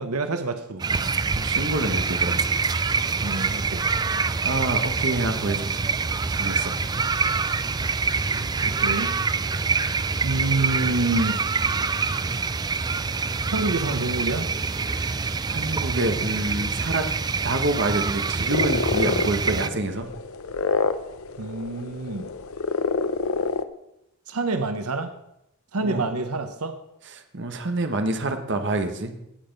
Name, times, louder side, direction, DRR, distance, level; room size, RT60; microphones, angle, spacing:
voice 1, 0.0-1.1 3.2-3.8 8.3-9.1 10.2-11.4 13.5-14.5 21.4-22.3 24.3-25.1 25.7-26.7, right 2 dB, 90° right, 8 dB, 1.0 m, -27 dB
sound 1, 0.8-19.7, right 4 dB, 20° right, 0.3 m, -25 dB
voice 2, 1.3-2.5 4.4-5.9 6.3-6.7 14.9-17.1 17.4-20.1 25.8-26.0 27.1-29.1, right 2 dB, 55° right, 7 dB, 1.3 m, -27 dB
sound 2, 18.5-23.6, left 4 dB, 75° left, 0.7 m, -27 dB
16.5 x 6.9 x 5.4 m, 0.82 s
head